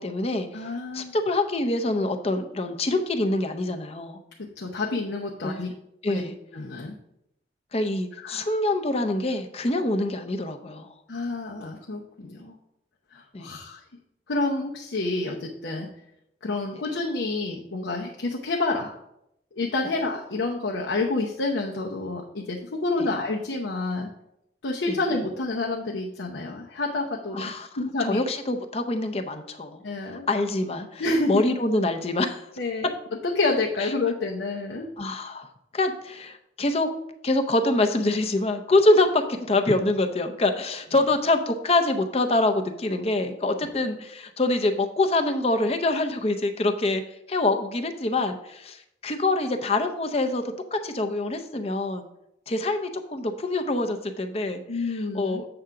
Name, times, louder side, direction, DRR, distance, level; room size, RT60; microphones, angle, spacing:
voice 1, 0.0-0.5 0.9-4.2 5.4-5.7 6.0-6.3 7.7-10.9 13.3-13.5 23.0-23.1 24.9-25.0 27.3-27.7 28.0-29.8 30.3-32.4 33.8-33.9 35.0-35.5 35.7-36.9 37.2-47.0 47.3-52.1 52.5-55.5, left 2 dB, 35° left, 7 dB, 0.6 m, -25 dB
voice 2, 0.5-1.1 4.6-5.7 6.1-6.2 6.5-7.0 8.2-8.5 11.1-12.5 13.1-13.8 14.3-15.9 16.4-18.9 19.5-24.1 24.6-27.5 27.8-28.2 29.8-30.3 31.0-31.4 32.6-32.9 33.2-34.9 54.7-55.4, left 2 dB, 85° left, 0 dB, 0.7 m, -28 dB
7.8 x 3.7 x 5.7 m, 0.80 s
head